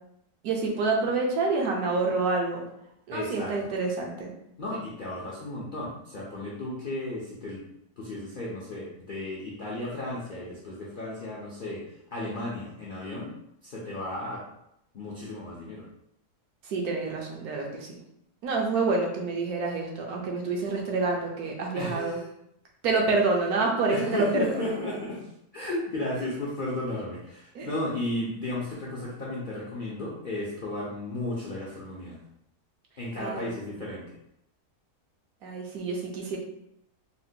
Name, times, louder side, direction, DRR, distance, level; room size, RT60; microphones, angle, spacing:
voice 1, 0.4-2.6 3.1-4.3 16.6-18.0 18.4-22.2 22.8-24.6 27.5-27.7 33.2-33.5 35.4-36.4, right 3 dB, 70° right, 0 dB, 1.1 m, -27 dB
voice 2, 3.1-3.7 4.6-7.6 8.0-11.8 12.1-13.3 13.6-14.4 14.9-15.9 21.7-22.2 23.9-32.2 33.0-34.2, left 1 dB, 65° left, -6 dB, 0.5 m, -34 dB
4.1 x 2.1 x 2.7 m, 0.78 s
omnidirectional pair, 1.7 m